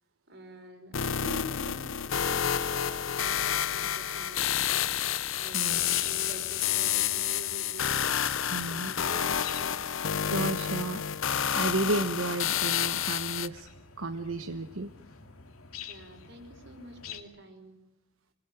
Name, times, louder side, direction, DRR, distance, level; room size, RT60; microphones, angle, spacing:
voice 1, 0.3-8.4 8.7-10.3 15.9-17.8, right 1 dB, 55° right, 6 dB, 5.1 m, -47 dB
sound 1, 0.9-13.5, left 9 dB, 70° left, 0.8 m, -29 dB
sound 2, 4.6-17.2, left 7 dB, 90° left, 2.4 m, -48 dB
voice 2, 8.5-8.9 10.3-11.0 11.5-13.7 14.0-14.9, right 2 dB, 75° right, 8 dB, 1.2 m, -32 dB
26.0 x 21.5 x 8.4 m, 0.90 s
head